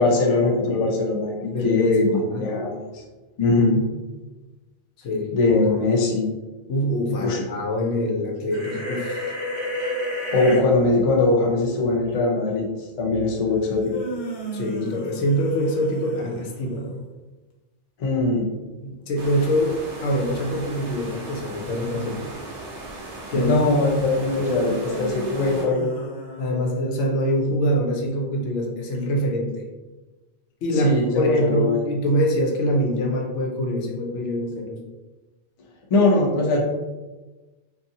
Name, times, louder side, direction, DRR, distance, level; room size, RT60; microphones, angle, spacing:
voice 1, 0.0-3.0 3.4-3.8 5.3-6.3 7.2-7.4 10.3-13.9 18.0-18.5 23.3-25.9 30.7-31.8 35.9-36.6, left 2 dB, 55° left, 0 dB, 0.4 m, -21 dB
voice 2, 1.5-2.4 5.0-5.8 6.7-9.3 14.5-17.0 18.8-19.7 20.0-22.3 23.3-23.5 26.4-29.6 30.6-34.8, equal, 90° left, 1 dB, 0.9 m, -24 dB
sound 1, 8.5-10.6, left 1 dB, 30° right, 0.6 m, -28 dB
sound 2, 13.7-16.9 24.0-27.0, right 1 dB, 70° left, 0.9 m, -34 dB
sound 3, 19.2-25.6, right 2 dB, 85° right, 0.9 m, -37 dB
2.6 x 2.3 x 2.7 m, 1.2 s
omnidirectional pair, 1.2 m